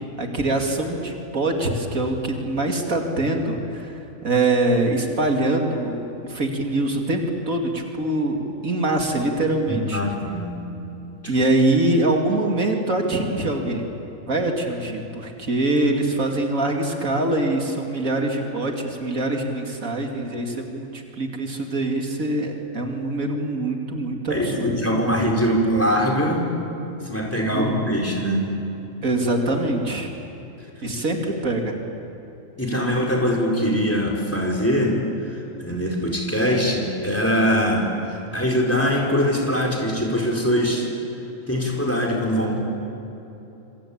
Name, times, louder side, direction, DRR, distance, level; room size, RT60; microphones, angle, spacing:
voice 1, 0.2-8.4 8.6-10.1 11.3-13.9 14.3-24.7 27.5-28.0 29.0-30.1 30.8-31.8, right 2 dB, 75° right, 2 dB, 3.0 m, -24 dB
voice 2, 9.7-10.6 24.3-26.5 27.0-28.5 32.6-35.0 35.3-40.9 41.5-42.8, equal, 10° left, 0 dB, 4.7 m, -22 dB
27.0 x 25.0 x 8.7 m, 3.0 s
omnidirectional pair, 1.4 m